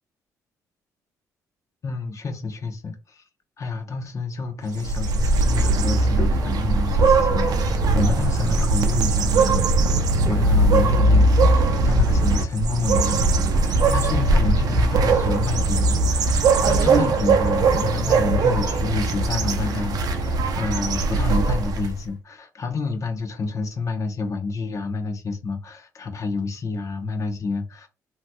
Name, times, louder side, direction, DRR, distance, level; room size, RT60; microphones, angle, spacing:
voice 1, 1.8-3.2 3.6-27.9, left 4 dB, 45° left, 0.8 m, -29 dB
sound 1, 4.7-22.0, right 3 dB, 60° right, 0.6 m, -20 dB
sound 2, 7.2-18.9, equal, 5° right, 1.1 m, -34 dB
3.1 x 2.8 x 2.2 m
supercardioid pair, 70°, 7 cm